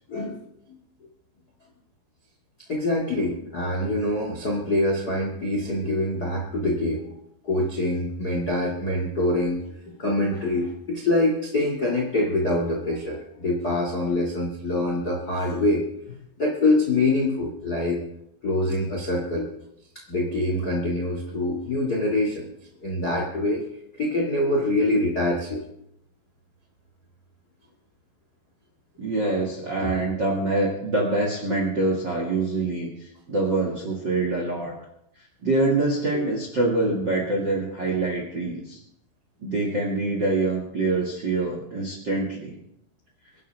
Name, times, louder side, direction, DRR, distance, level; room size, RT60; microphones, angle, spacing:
voice 1, 0.1-0.4 2.7-7.0 7.4-18.0 18.4-19.5 20.1-22.5 22.8-23.6 24.0-25.6 29.8-30.0, left 1 dB, 50° left, 0 dB, 1.1 m, -25 dB
voice 2, 29.0-34.7 35.4-38.8 39.4-42.6, right 2 dB, 45° right, 0 dB, 1.4 m, -25 dB
24.5 x 11.0 x 3.4 m, 0.77 s
omnidirectional pair, 5.3 m